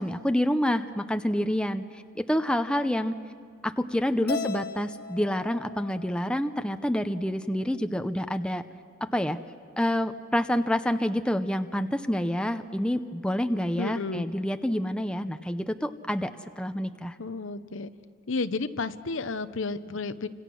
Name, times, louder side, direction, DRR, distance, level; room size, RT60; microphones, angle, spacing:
voice 1, 0.0-3.1 3.6-8.6 9.1-9.4 9.8-17.2, equal, 5° left, 8 dB, 0.6 m, -28 dB
voice 2, 4.2-4.6 13.8-14.3 17.2-17.9 18.3-20.3, left 3 dB, 75° left, 12 dB, 0.8 m, -32 dB
Keyboard (musical), 4.3-6.6, left 4 dB, 50° left, 1.1 m, -37 dB
30.0 x 26.0 x 6.2 m, 2.2 s
head